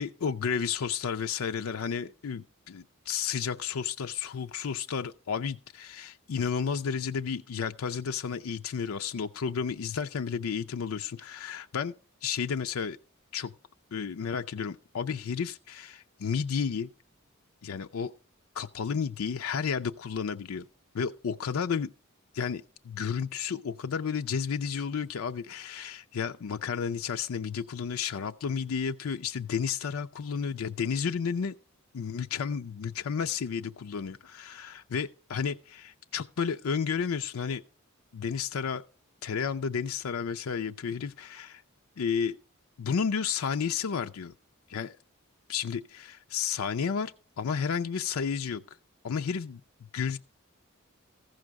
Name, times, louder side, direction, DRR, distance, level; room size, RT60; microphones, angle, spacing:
voice 1, 0.0-11.9 12.2-13.0 13.3-13.5 13.9-16.9 17.6-18.1 18.6-20.7 20.9-21.9 22.3-31.5 31.9-37.6 38.1-38.8 39.2-41.6 42.0-42.4 42.8-44.3 44.7-45.0 45.5-48.6 49.0-49.6 49.9-50.2, left 6 dB, 80° left, 0.5 m, -32 dB
14.5 x 6.5 x 4.7 m
head